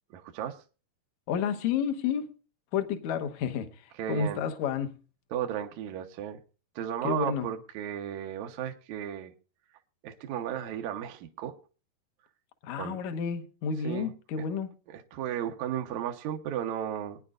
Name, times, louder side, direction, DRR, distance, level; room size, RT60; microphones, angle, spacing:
voice 1, 0.1-0.6 4.0-4.4 5.3-6.4 6.8-9.3 10.0-11.5 12.8-13.0 13.8-14.4 14.9-17.2, right 10 dB, 70° right, 1.8 m, -34 dB
voice 2, 1.3-2.3 2.7-5.0 7.0-7.5 12.6-14.7, left 7 dB, 65° left, 1.9 m, -31 dB
22.5 x 9.9 x 2.5 m
omnidirectional pair, 4.6 m